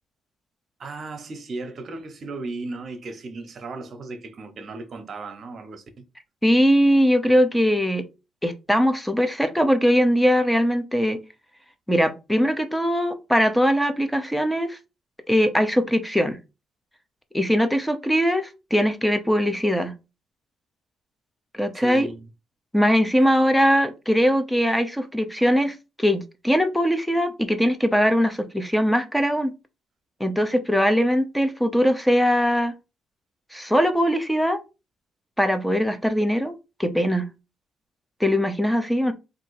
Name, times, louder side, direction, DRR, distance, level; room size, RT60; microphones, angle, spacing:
voice 1, 0.8-6.0 21.7-22.2 23.2-23.3, right 3 dB, 50° right, 1.0 m, -36 dB
voice 2, 6.4-8.0 8.4-11.2 11.9-14.8 15.3-16.4 17.3-19.9 21.5-22.1 22.7-29.5 30.2-32.7 33.5-34.6 35.4-36.5 36.8-37.3 38.2-39.1, equal, 5° left, 0.8 m, -21 dB
3.7 x 2.7 x 4.6 m
cardioid pair, 90°, 0 cm